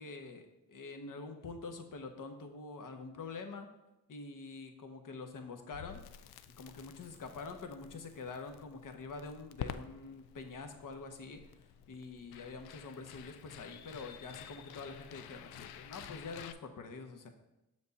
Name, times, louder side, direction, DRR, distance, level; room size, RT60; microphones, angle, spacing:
voice 1, 0.0-3.7 4.1-6.0 6.6-11.4 11.9-17.3, left 4 dB, 55° left, 6 dB, 1.1 m, -46 dB
Crackle, 5.7-16.5, left 10 dB, 75° left, 0.5 m, -50 dB
6.7 x 5.1 x 4.1 m, 0.94 s
supercardioid pair, 50°, 38 cm